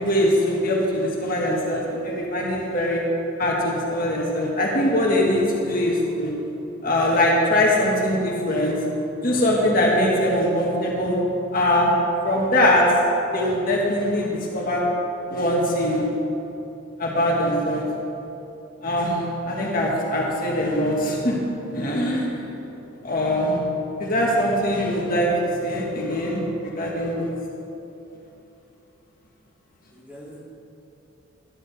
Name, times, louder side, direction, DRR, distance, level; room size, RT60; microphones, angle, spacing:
voice 1, 0.0-3.0 3.4-6.3 6.8-8.7 9.2-11.2 11.5-11.9 12.2-12.9 13.3-14.3 14.5-14.8 15.3-16.0 17.0-17.8 18.8-21.4 21.7-22.3 23.0-23.6 24.0-25.3 25.6-27.3, left 1 dB, 45° left, -3 dB, 1.8 m, -22 dB
voice 2, 22.7-23.0 29.9-30.4, equal, 10° right, -7 dB, 2.6 m, -45 dB
12.5 x 12.0 x 3.5 m, 2.9 s
head